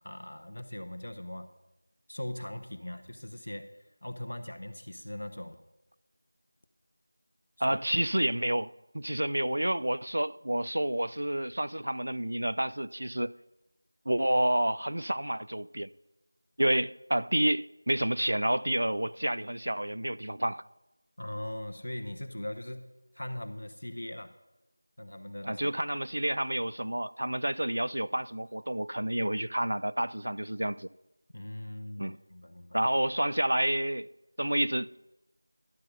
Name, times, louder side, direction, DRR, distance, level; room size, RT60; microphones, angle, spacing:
voice 1, 0.0-1.5 2.1-3.7 4.0-5.6 7.6-7.8 21.2-22.9 23.1-24.3 25.0-25.7 31.3-32.8, left 1 dB, 75° left, 1.0 m, -40 dB
voice 2, 7.6-13.3 14.1-15.9 16.6-20.6 25.4-30.9 32.0-32.2 32.7-34.1 34.4-35.0, right 1 dB, 75° right, 0.3 m, -29 dB
11.5 x 6.7 x 5.6 m
figure-of-eight pair, 175°, 0 cm